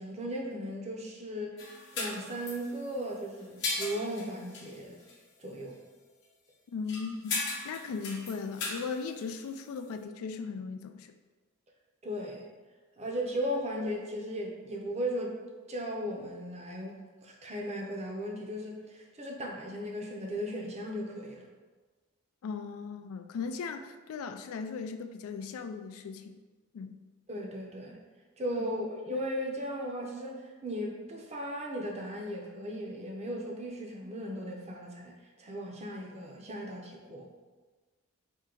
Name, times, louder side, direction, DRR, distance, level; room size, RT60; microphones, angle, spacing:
voice 1, 0.0-5.0 5.4-5.8 12.0-12.4 13.0-15.4 15.7-21.5 27.3-28.0 28.4-37.3, equal, 30° right, 0 dB, 0.6 m, -37 dB
sound 1, 1.6-3.1 3.4-4.8 5.0-5.2 6.9-9.8, left 3 dB, 55° left, 0.9 m, -37 dB
voice 2, 6.7-11.1 22.4-26.4 26.7-27.0 28.5-28.7, left 5 dB, 75° left, 7 dB, 0.3 m, -38 dB
4.5 x 2.8 x 3.8 m, 1.3 s
head